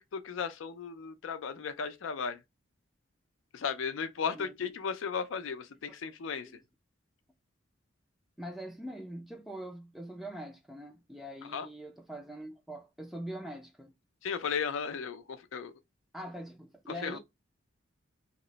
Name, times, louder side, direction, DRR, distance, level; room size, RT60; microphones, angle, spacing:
voice 1, 0.0-2.4 3.5-6.5 11.5-11.7 14.2-15.7 17.0-17.2, left 6 dB, 75° left, 0.4 m, -35 dB
voice 2, 8.4-13.9 16.1-17.2, right 1 dB, ahead, 0.4 m, -43 dB
2.9 x 2.0 x 3.9 m
head